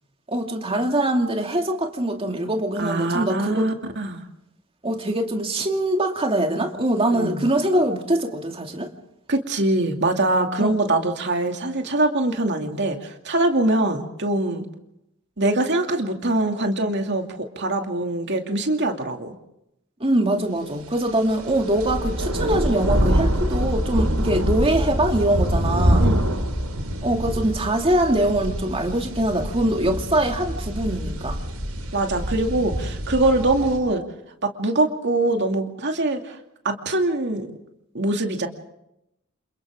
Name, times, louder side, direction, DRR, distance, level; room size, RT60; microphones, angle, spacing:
voice 1, 0.3-3.7 4.8-8.9 10.6-10.8 20.0-26.1 27.0-31.4, right 1 dB, 25° right, 2.5 m, -23 dB
voice 2, 2.8-4.2 7.1-7.4 9.3-14.7 15.4-19.4 23.9-24.2 26.0-26.2 31.9-34.0 34.4-36.4 36.6-37.5 37.9-38.5, right 2 dB, 55° right, 2.6 m, -23 dB
sound 1, 21.1-33.8, equal, 85° right, 5.6 m, -25 dB
29.0 x 28.0 x 3.7 m
head